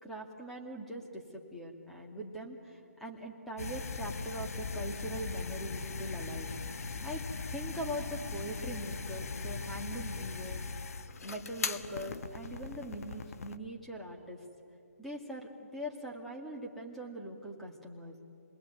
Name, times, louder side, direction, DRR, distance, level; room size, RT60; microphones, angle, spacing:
voice 1, 0.0-6.5 7.0-7.2 7.5-10.6 11.2-14.4 15.0-18.1, right 1 dB, ahead, -2 dB, 2.3 m, -42 dB
sound 1, 3.6-13.6, left 4 dB, 65° left, 1.3 m, -39 dB
29.0 x 20.5 x 9.5 m, 2.6 s
hypercardioid pair, 155°, 9 cm